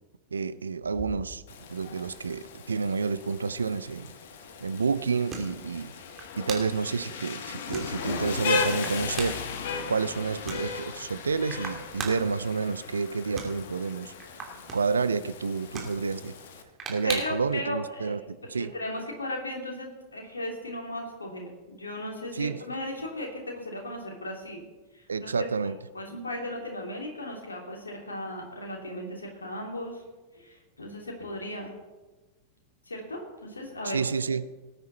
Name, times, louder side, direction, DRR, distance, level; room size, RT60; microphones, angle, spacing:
voice 1, 0.3-1.4 1.7-4.1 4.6-5.9 6.4-9.4 9.9-14.1 14.7-16.3 16.9-18.7 22.3-22.6 25.1-25.8 33.8-34.6, right 5 dB, 75° right, 15 dB, 0.5 m, -29 dB
sound 1, 0.8-17.6, right 4 dB, 25° right, 3.0 m, -43 dB
Rain, 1.5-16.6, left 6 dB, 60° left, 1.3 m, -37 dB
voice 2, 17.0-24.6 24.9-25.4 25.9-30.0 30.3-31.7 32.9-34.0, left 1 dB, 75° left, 1 dB, 2.9 m, -36 dB
19.0 x 9.4 x 4.1 m, 1.2 s
figure-of-eight pair, 90°, 0 cm